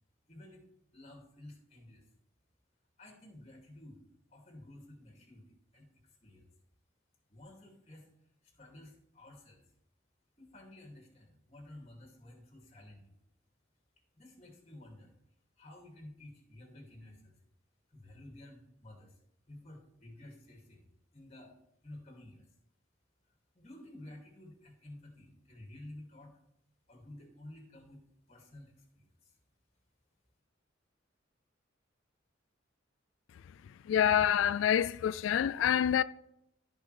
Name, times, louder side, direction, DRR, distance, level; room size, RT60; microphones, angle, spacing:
voice 1, 0.3-0.6 0.9-2.1 3.0-4.0 4.3-5.9 6.2-6.5 7.3-8.1 8.4-9.6 10.4-13.2 14.1-15.1 15.6-17.4 17.9-19.2 19.5-20.8 21.1-21.6 21.8-22.5 23.5-26.4 26.9-28.0 28.3-29.4, left 1 dB, 35° left, 2.4 m, -52 dB
voice 2, 33.9-36.0, left 9 dB, 85° left, 0.3 m, -27 dB
15.5 x 5.3 x 3.3 m
head